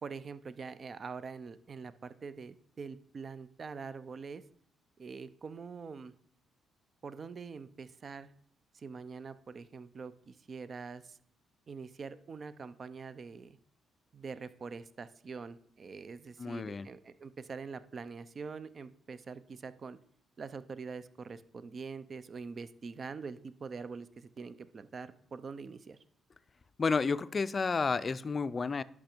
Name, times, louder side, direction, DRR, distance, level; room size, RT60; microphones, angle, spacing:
voice 1, 0.0-4.4 5.0-6.1 7.0-8.3 8.7-11.2 11.7-13.6 14.1-20.0 20.4-26.0, right 5 dB, 40° right, 14 dB, 0.6 m, -44 dB
voice 2, 16.4-16.9 26.8-28.8, left 4 dB, 35° left, 16 dB, 0.4 m, -31 dB
10.5 x 6.1 x 4.5 m, 0.64 s
cardioid pair, 90°, 0 cm